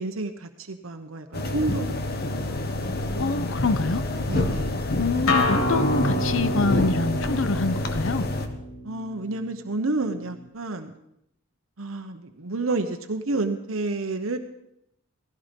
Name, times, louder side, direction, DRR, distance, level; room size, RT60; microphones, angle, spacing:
voice 1, 0.0-2.0 2.4-2.8 4.3-4.8 8.8-10.9 11.8-14.4, right 2 dB, 85° right, 6 dB, 1.1 m, -30 dB
sound 1, 1.3-8.5, left 1 dB, 50° left, 1.5 m, -27 dB
voice 2, 3.2-4.0 5.0-8.3, left 3 dB, 70° left, 14 dB, 0.8 m, -25 dB
Acoustic guitar, 5.3-10.5, left 1 dB, 85° left, 3.1 m, -29 dB
17.5 x 15.5 x 5.3 m, 0.77 s
head